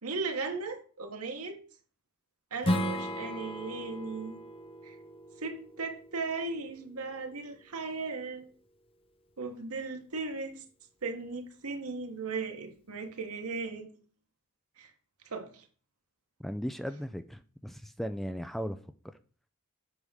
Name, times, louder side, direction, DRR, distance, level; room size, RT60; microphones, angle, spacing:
voice 1, 0.0-1.6 2.5-4.4 4.8-4.9 5.4-8.5 9.4-10.6 11.0-14.0 14.8-14.9 15.2-15.6, right 4 dB, 85° right, 1.4 m, -37 dB
Strum, 2.6-7.8, equal, 25° left, 0.7 m, -36 dB
voice 2, 16.4-18.8, equal, ahead, 0.3 m, -36 dB
8.1 x 3.6 x 6.3 m
head